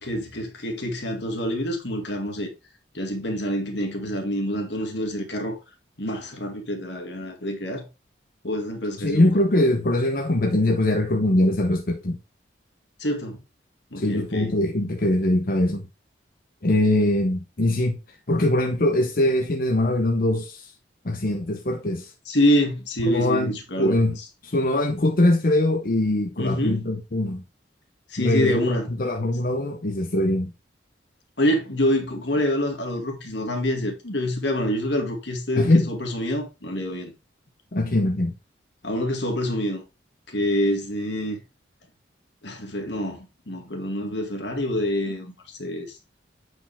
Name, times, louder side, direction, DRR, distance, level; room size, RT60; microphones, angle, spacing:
voice 1, 0.0-2.5 2.9-5.6 6.0-7.8 8.4-9.3 13.0-13.4 13.9-14.5 22.3-24.0 26.4-26.8 28.1-28.9 31.4-37.1 38.8-39.8 40.3-41.4 42.4-46.0, equal, 70° left, 2.1 m, -26 dB
voice 2, 9.0-12.2 14.0-15.8 16.6-18.0 18.3-20.7 21.0-22.1 23.0-24.2 24.4-27.4 28.2-30.5 35.6-35.9 37.7-38.3, left 1 dB, 50° left, 0.8 m, -22 dB
8.0 x 4.9 x 3.5 m
head